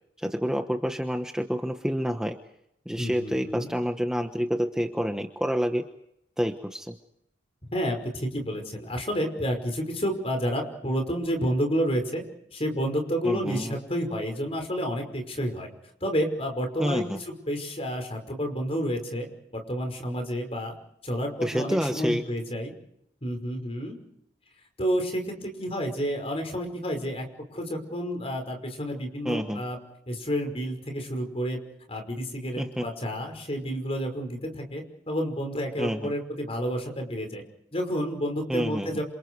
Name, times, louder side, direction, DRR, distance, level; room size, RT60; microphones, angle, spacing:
voice 1, 0.2-2.4 2.8-5.8 6.4-7.0 13.2-13.8 16.8-17.2 21.4-22.2 29.2-29.6 32.6-32.9 35.8-36.1 38.5-39.0, equal, 5° right, 5 dB, 1.1 m, -28 dB
voice 2, 3.0-3.7 7.7-12.2 12.5-15.7 16.0-20.7 21.0-22.7 23.2-24.0 24.8-27.2 27.5-29.8 30.1-31.6 31.9-37.4 37.7-39.0, equal, 35° left, 4 dB, 5.5 m, -30 dB
28.0 x 27.5 x 4.8 m, 0.77 s
head